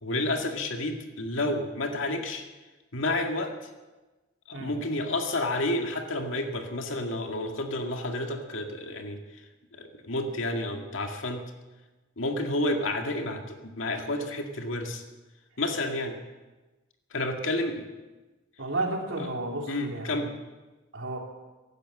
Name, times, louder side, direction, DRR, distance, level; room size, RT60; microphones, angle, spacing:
voice 1, 0.0-2.4 2.9-3.5 4.5-9.2 9.7-11.4 12.2-15.0 15.6-16.1 17.1-17.9 19.2-19.3 19.7-20.3, left 2 dB, 75° left, 3 dB, 2.0 m, -30 dB
voice 2, 18.6-20.2 20.9-21.2, right 2 dB, 70° right, 1 dB, 3.1 m, -32 dB
16.0 x 12.0 x 7.5 m, 1.2 s
head